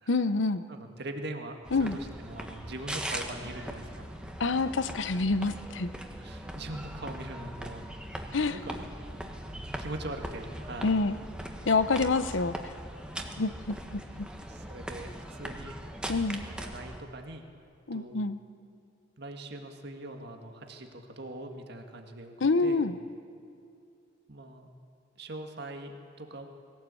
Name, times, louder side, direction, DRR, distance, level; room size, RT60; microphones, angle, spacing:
voice 1, 0.1-0.6 1.7-2.0 4.4-5.9 8.3-8.5 10.8-11.2 11.6-12.5 13.4-14.3 16.1-16.4 17.9-18.4 22.4-23.0, left 3 dB, 75° left, 12 dB, 0.8 m, -27 dB
voice 2, 0.7-4.1 6.2-8.0 8.5-8.9 9.8-11.0 13.4-13.5 14.5-15.8 16.5-17.5 17.9-18.2 19.2-22.8 24.3-24.7 25.2-26.5, right 1 dB, 60° right, 4 dB, 1.9 m, -42 dB
sound 1, 1.6-17.0, right 1 dB, 5° right, 1.4 m, -40 dB
20.5 x 17.0 x 8.4 m, 2.5 s
head